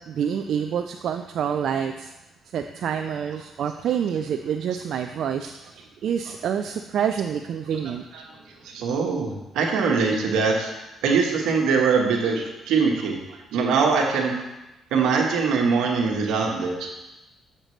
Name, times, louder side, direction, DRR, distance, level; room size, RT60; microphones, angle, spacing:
voice 1, 0.1-2.1 2.5-8.0, right 8 dB, 70° right, 6 dB, 0.3 m, -27 dB
voice 2, 8.6-10.7 11.0-13.2 13.5-14.3 14.9-16.9, right 5 dB, 90° right, 1 dB, 1.2 m, -22 dB
7.5 x 6.5 x 3.2 m, 1.0 s
cardioid pair, 90°, 0 cm